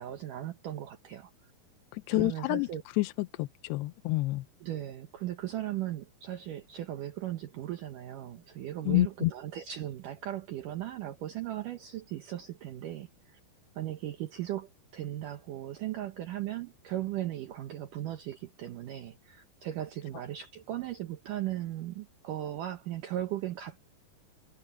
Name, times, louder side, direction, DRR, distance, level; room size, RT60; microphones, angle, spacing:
voice 1, 0.0-1.5 2.1-2.8 4.6-13.4 13.8-23.8, right 13 dB, 75° right, 1.9 m, -37 dB
voice 2, 1.9-2.7 3.0-3.1 3.4-4.4 8.9-9.3, left 20 dB, 80° left, 2.6 m, -28 dB
omnidirectional pair, 5.0 m